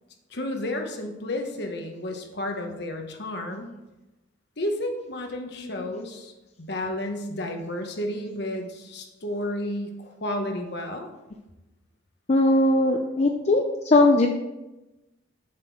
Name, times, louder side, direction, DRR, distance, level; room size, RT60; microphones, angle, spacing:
voice 1, 0.3-3.7 4.6-6.3 6.6-11.1, left 1 dB, 55° left, 3 dB, 1.1 m, -32 dB
voice 2, 5.6-5.9 12.3-14.3, left 2 dB, 35° left, 2 dB, 0.5 m, -20 dB
7.4 x 6.1 x 4.8 m, 1.0 s
head